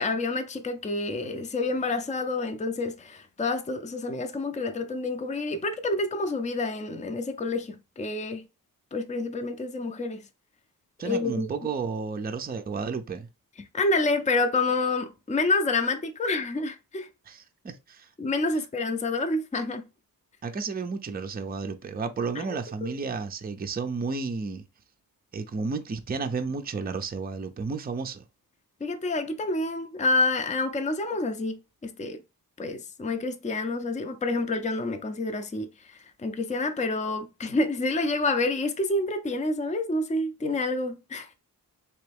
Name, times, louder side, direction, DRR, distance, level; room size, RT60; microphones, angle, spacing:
voice 1, 0.0-8.4 8.9-10.2 11.0-11.5 13.7-17.1 18.2-19.8 22.4-22.5 22.8-22.9 28.8-32.2 32.6-41.4, left 2 dB, 20° left, 0.5 m, -28 dB
voice 2, 11.0-13.3 17.3-18.1 20.4-24.6 25.3-28.2, right 4 dB, 25° right, 0.5 m, -32 dB
3.4 x 3.0 x 3.4 m
cardioid pair, 65°, 36 cm